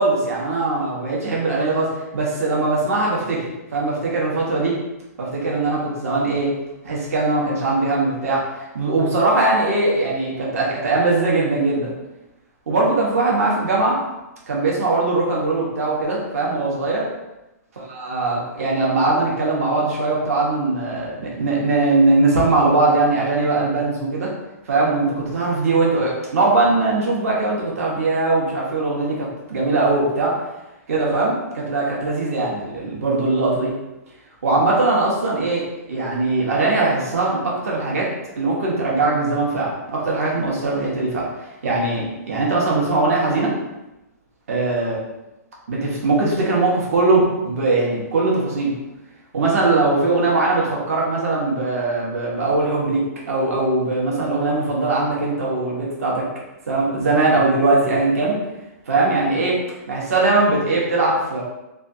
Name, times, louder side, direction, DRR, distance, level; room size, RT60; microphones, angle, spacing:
voice 1, 0.0-4.8 5.2-6.5 6.8-11.9 12.7-14.0 14.5-17.1 17.8-24.3 24.7-30.4 30.9-33.7 34.4-35.6 35.9-41.3 41.6-43.5 44.5-45.0 45.7-48.7 49.3-56.3 56.7-58.4 58.9-59.6 59.9-61.4, right 2 dB, 60° right, -4 dB, 1.0 m, -20 dB
3.2 x 2.3 x 2.6 m, 0.97 s
hypercardioid pair, 175°, 9 cm